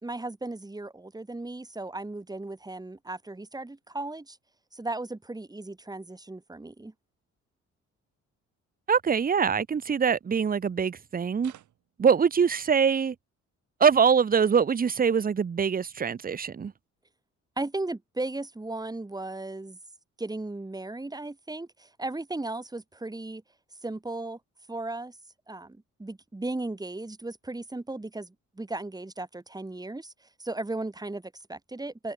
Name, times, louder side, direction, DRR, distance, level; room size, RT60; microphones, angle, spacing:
voice 1, 0.0-4.4 4.7-6.9 17.6-19.8 20.2-23.4 23.8-24.4 24.7-25.2 25.5-30.1 30.4-32.1, right 2 dB, 15° right, 3.2 m, -36 dB
voice 2, 8.9-11.5 12.0-13.1 13.8-16.7, right 6 dB, 30° right, 0.9 m, -23 dB
sound 1, 11.4-12.0 15.2-15.3, right 12 dB, 75° right, 4.6 m, -52 dB
cardioid pair, 90°, 30 cm